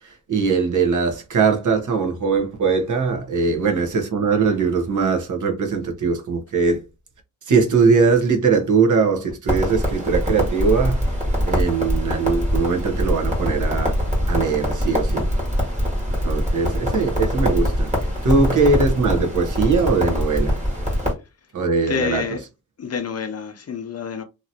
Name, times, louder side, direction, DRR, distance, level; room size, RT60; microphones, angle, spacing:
voice 1, 0.0-6.9 7.5-11.1 11.4-14.0 14.3-15.3 16.1-20.6 21.5-22.2, right 4 dB, 55° right, 1.0 m, -21 dB
Crackle, 9.5-21.1, equal, 20° right, 1.6 m, -23 dB
voice 2, 21.8-22.4 22.8-24.2, left 6 dB, 45° left, 0.6 m, -28 dB
2.9 x 2.7 x 2.7 m
cardioid pair, 100°, 36 cm